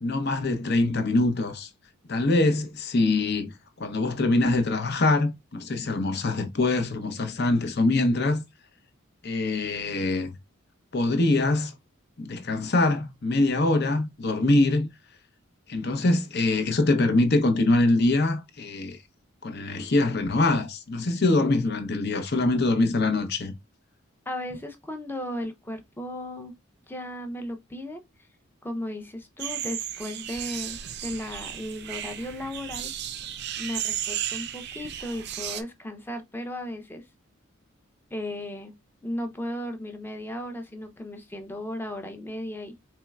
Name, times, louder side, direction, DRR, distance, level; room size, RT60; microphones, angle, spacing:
voice 1, 0.0-1.7 2.1-8.4 9.2-10.4 10.9-11.7 12.2-14.9 15.7-19.0 19.4-23.5, left 2 dB, 50° left, 0.8 m, -24 dB
voice 2, 24.3-26.5 26.9-28.0 28.6-32.9 33.6-37.0 38.1-38.7 39.0-42.8, left 1 dB, 10° left, 0.7 m, -35 dB
sound 1, 29.4-35.6, right 10 dB, 55° right, 0.5 m, -34 dB
4.5 x 3.1 x 2.3 m
head